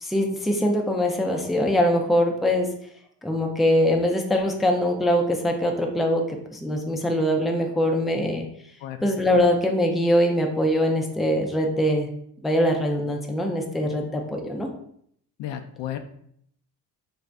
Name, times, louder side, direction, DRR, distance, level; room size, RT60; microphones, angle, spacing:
voice 1, 0.0-2.7 3.2-8.5 9.0-12.1 12.4-14.7, equal, ahead, 1 dB, 0.4 m, -23 dB
voice 2, 15.4-16.0, left 11 dB, 85° left, 7 dB, 0.5 m, -32 dB
4.0 x 2.6 x 3.3 m, 0.68 s
cardioid pair, 120°, 42 cm